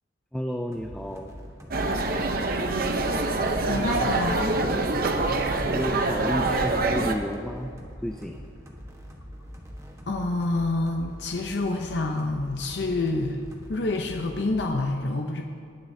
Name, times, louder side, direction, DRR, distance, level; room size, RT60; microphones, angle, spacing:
voice 1, 0.3-1.4 5.7-7.7 8.0-8.4, equal, 5° left, 3 dB, 0.3 m, -31 dB
sound 1, 0.7-14.8, equal, 15° right, 1.2 m, -44 dB
sound 2, 1.7-7.1, right 2 dB, 50° right, 0.7 m, -25 dB
voice 2, 3.7-4.6 10.1-13.4 13.7-15.4, left 2 dB, 60° left, 3 dB, 0.7 m, -27 dB
19.5 x 10.5 x 2.7 m, 2.5 s
head